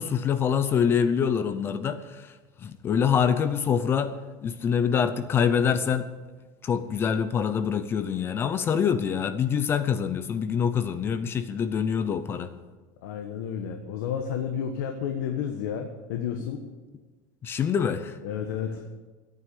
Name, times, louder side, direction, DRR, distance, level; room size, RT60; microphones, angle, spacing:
voice 1, 0.0-2.3 2.6-4.1 4.4-6.1 6.6-12.5 17.4-18.2, left 7 dB, 20° left, 11 dB, 0.6 m, -25 dB
voice 2, 13.0-16.6 18.2-18.8, left 8 dB, 75° left, 5 dB, 1.3 m, -31 dB
14.5 x 9.2 x 8.4 m, 1.3 s
supercardioid pair, 165°, 10 cm